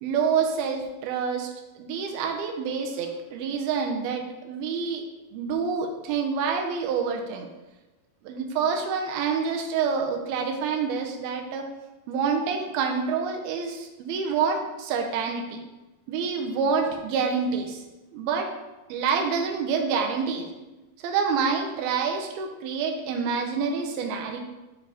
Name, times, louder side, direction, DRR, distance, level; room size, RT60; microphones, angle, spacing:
voice 1, 0.0-1.5 1.8-5.0 5.3-7.5 8.2-11.7 12.1-15.6 16.1-17.8 18.1-18.5 18.9-20.5 21.0-24.4, right 5 dB, 85° right, 2 dB, 2.6 m, -27 dB
10.0 x 3.4 x 3.7 m, 1.1 s
omnidirectional pair, 4.4 m